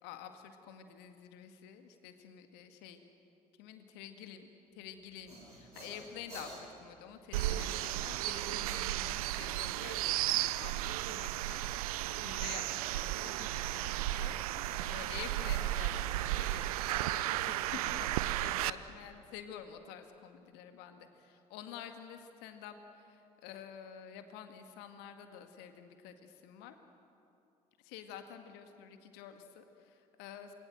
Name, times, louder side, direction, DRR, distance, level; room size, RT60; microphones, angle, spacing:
voice 1, 0.0-3.0 3.6-4.5 4.8-26.8 27.8-30.5, left 9 dB, 60° left, 7 dB, 2.0 m, -49 dB
sound 1, 4.9-8.3 11.4-13.2 13.6-15.1 15.4-17.7, right 1 dB, 90° right, 5.8 m, -53 dB
sound 2, 7.3-18.7, right 15 dB, 70° right, 0.6 m, -34 dB
28.0 x 21.5 x 7.8 m, 2.7 s
figure-of-eight pair, 55°, 19 cm